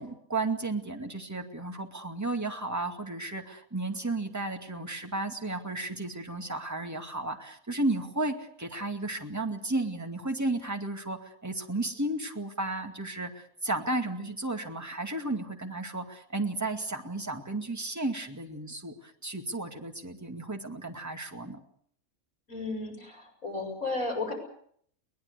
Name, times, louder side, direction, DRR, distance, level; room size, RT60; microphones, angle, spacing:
voice 1, 0.0-21.6, right 2 dB, 10° right, 4 dB, 2.3 m, -33 dB
voice 2, 22.5-24.3, left 3 dB, 65° left, 3 dB, 7.7 m, -33 dB
23.0 x 20.0 x 8.2 m, 0.64 s
omnidirectional pair, 1.5 m